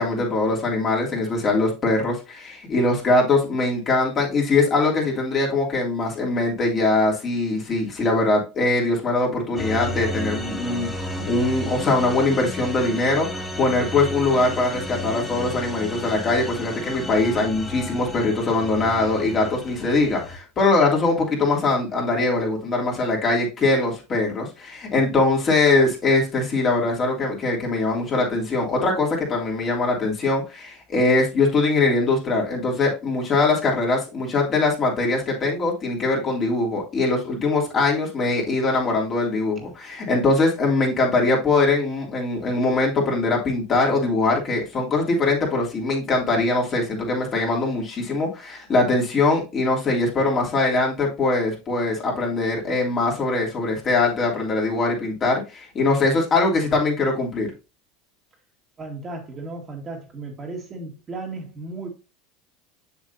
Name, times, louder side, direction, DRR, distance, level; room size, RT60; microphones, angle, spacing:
voice 1, 0.0-57.5, left 3 dB, 35° left, 3.2 m, -22 dB
sound 1, 9.6-20.4, equal, 5° left, 1.9 m, -32 dB
voice 2, 58.8-61.9, right 3 dB, 30° right, 1.9 m, -35 dB
6.9 x 6.5 x 2.8 m
hypercardioid pair, 100°, 0 cm